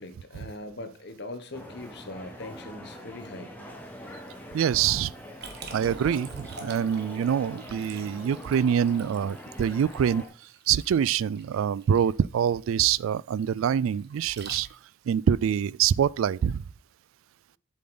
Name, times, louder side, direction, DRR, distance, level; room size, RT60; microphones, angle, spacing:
voice 1, 0.0-3.5, left 2 dB, 55° left, 1.3 m, -41 dB
sound 1, 1.5-10.3, equal, 10° left, 1.4 m, -43 dB
voice 2, 4.5-5.1 5.7-10.2 10.7-14.7 15.1-16.6, right 8 dB, 80° right, 0.3 m, -25 dB
Liquid, 5.4-15.0, right 4 dB, 50° right, 1.6 m, -46 dB
7.6 x 7.4 x 3.9 m
head